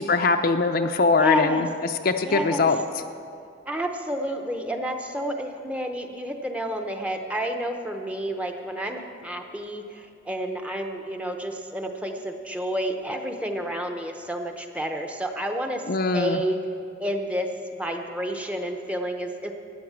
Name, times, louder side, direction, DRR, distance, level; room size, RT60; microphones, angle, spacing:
voice 1, 0.0-2.8 15.9-16.4, left 4 dB, 50° left, 6 dB, 0.6 m, -22 dB
voice 2, 1.2-1.6 2.2-2.7 3.7-15.8 16.1-16.6 17.0-17.5 17.8-19.5, equal, 5° right, 4 dB, 0.8 m, -30 dB
13.5 x 9.8 x 7.3 m, 2.4 s
head